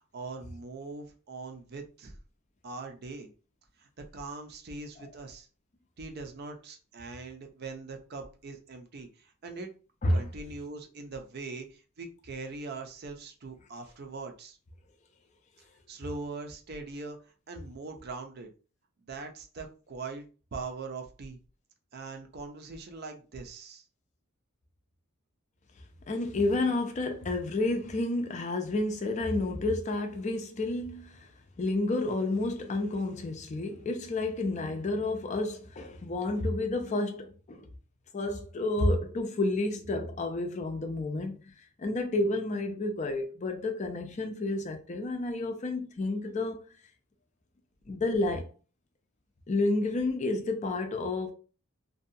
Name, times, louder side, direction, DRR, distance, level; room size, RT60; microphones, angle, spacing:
voice 1, 0.1-2.2 2.6-3.3 3.8-5.5 6.0-9.7 10.1-14.6 15.9-17.2 17.5-18.5 19.1-21.4 21.9-23.8, right 3 dB, 45° right, 0.5 m, -41 dB
voice 2, 26.1-31.3 31.6-37.7 38.1-46.6 47.9-48.4 49.5-51.3, left 2 dB, 35° left, 0.4 m, -30 dB
2.6 x 2.2 x 2.6 m
head